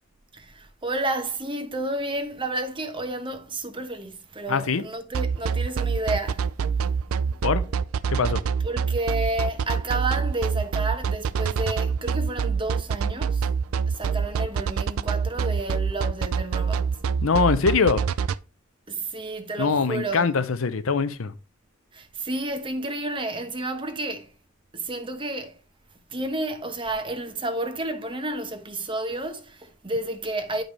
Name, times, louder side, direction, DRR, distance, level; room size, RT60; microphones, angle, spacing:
voice 1, 0.3-6.5 8.6-13.5 13.9-17.0 18.9-20.3 21.9-24.3 24.7-25.6 26.1-30.6, right 2 dB, 25° right, 1.0 m, -31 dB
voice 2, 4.5-4.8 7.4-7.6 8.1-8.4 17.2-18.0 19.6-21.3, left 5 dB, 75° left, 0.6 m, -22 dB
sound 1, 5.1-18.4, right 6 dB, 90° right, 0.4 m, -25 dB
8.9 x 5.2 x 3.2 m
head